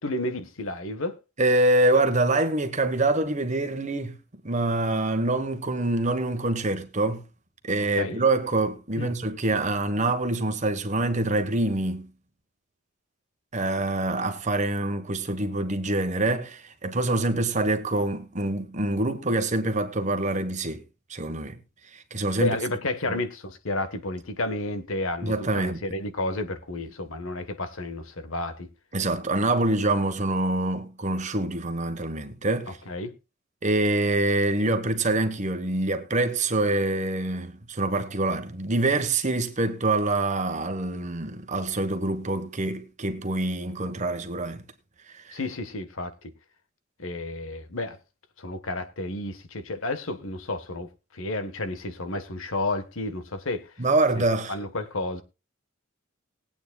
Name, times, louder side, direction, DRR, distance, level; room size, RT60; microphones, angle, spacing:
voice 1, 0.0-1.2 8.0-8.2 9.0-9.1 22.4-28.7 32.9-33.1 45.3-46.3 47.0-48.0 48.4-53.7 54.1-54.2 54.5-55.2, left 2 dB, 75° left, 1.3 m, -31 dB
voice 2, 1.4-4.2 4.4-7.2 7.7-12.1 13.5-20.8 21.1-21.6 21.9-22.6 23.1-23.2 25.2-25.8 28.9-32.8 33.6-44.6 45.2-45.4 53.8-54.5, right 2 dB, 35° right, 1.2 m, -25 dB
20.0 x 8.8 x 2.3 m
head